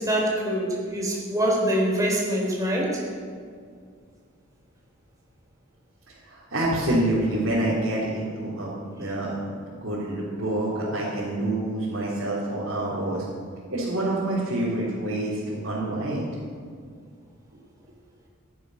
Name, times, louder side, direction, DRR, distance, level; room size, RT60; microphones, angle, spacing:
voice 1, 0.0-3.0, equal, 15° right, -2 dB, 4.1 m, -24 dB
voice 2, 6.1-13.2 13.7-16.3, right 1 dB, 70° right, -9 dB, 3.7 m, -27 dB
14.5 x 11.5 x 6.6 m, 2.1 s
head